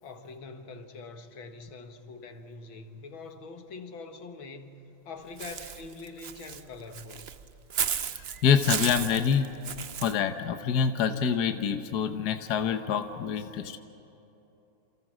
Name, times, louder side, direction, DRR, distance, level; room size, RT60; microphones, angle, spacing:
voice 1, 0.0-4.8 5.1-7.3, left 3 dB, 75° left, 7 dB, 2.3 m, -44 dB
Walk footsteps / Bird, 5.4-10.2, right 7 dB, 65° right, 0.6 m, -34 dB
voice 2, 8.1-9.6 10.0-13.8, left 7 dB, 55° left, 7 dB, 1.5 m, -26 dB
28.5 x 28.0 x 6.3 m, 3.0 s
omnidirectional pair, 2.2 m